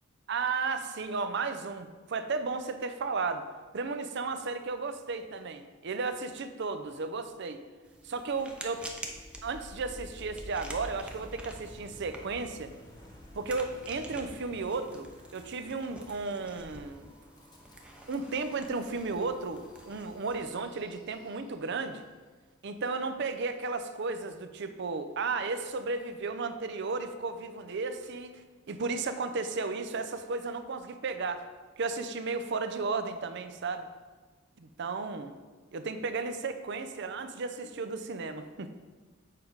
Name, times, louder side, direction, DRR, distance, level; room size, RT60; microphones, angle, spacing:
voice 1, 0.3-3.4 3.7-7.6 8.0-8.8 9.4-12.7 13.3-17.1 18.1-22.0 22.6-28.3 28.7-31.4 31.8-33.9 34.6-35.3 35.7-38.7, right 4 dB, 60° right, 9 dB, 0.6 m, -34 dB
sound 1, 7.8-20.4, right 1 dB, 5° right, 0.7 m, -49 dB
Wind, 8.9-21.9, equal, 20° left, 1.1 m, -51 dB
7.6 x 5.1 x 4.6 m, 1.3 s
head